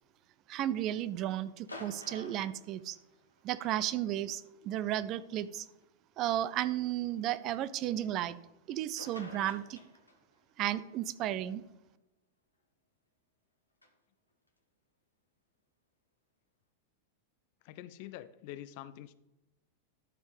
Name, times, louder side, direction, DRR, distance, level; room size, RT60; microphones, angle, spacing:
voice 1, 0.5-3.0 3.4-5.7 6.2-8.4 8.7-9.8 10.6-11.6, right 12 dB, 35° right, 15 dB, 0.4 m, -33 dB
sound 1, 1.6-3.5 4.8-4.9 5.8-5.9 8.7-8.8 9.0-10.4 13.8-13.9, left 2 dB, 85° left, 1.2 m, -50 dB
voice 2, 17.6-19.1, left 13 dB, 45° left, 14 dB, 0.5 m, -46 dB
11.5 x 4.5 x 5.0 m, 0.96 s
figure-of-eight pair, 90°, 0 cm